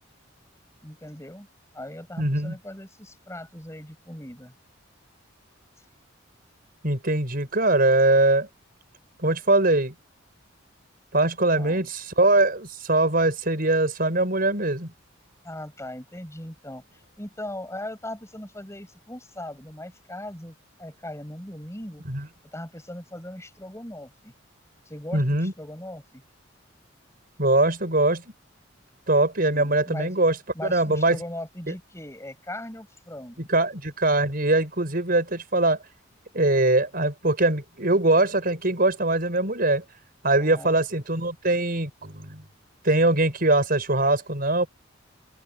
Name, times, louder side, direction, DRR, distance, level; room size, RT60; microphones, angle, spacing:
voice 1, 0.8-1.5 1.7-4.5 11.5-11.9 15.4-22.0 22.5-24.3 24.8-26.2 29.4-30.1 30.5-33.5 40.4-40.8, left 1 dB, 15° left, 6.9 m, -39 dB
voice 2, 2.2-2.5 6.8-8.5 9.2-9.9 11.1-14.9 22.1-22.3 25.1-25.5 27.4-28.2 29.1-30.4 30.6-31.2 33.4-35.8 36.3-39.8 40.2-42.4 42.8-44.7, right 2 dB, 45° right, 5.5 m, -22 dB
open air
head